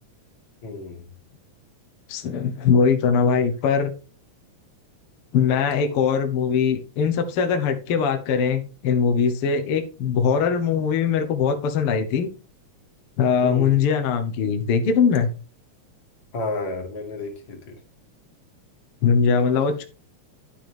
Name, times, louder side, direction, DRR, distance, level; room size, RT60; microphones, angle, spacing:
voice 1, 0.6-1.1 13.4-13.9 16.3-17.8, left 3 dB, 35° left, 2.3 m, -31 dB
voice 2, 2.1-3.9 5.3-12.3 13.2-15.3 19.0-19.8, left 6 dB, 60° left, 1.8 m, -21 dB
11.5 x 7.8 x 3.4 m
omnidirectional pair, 3.4 m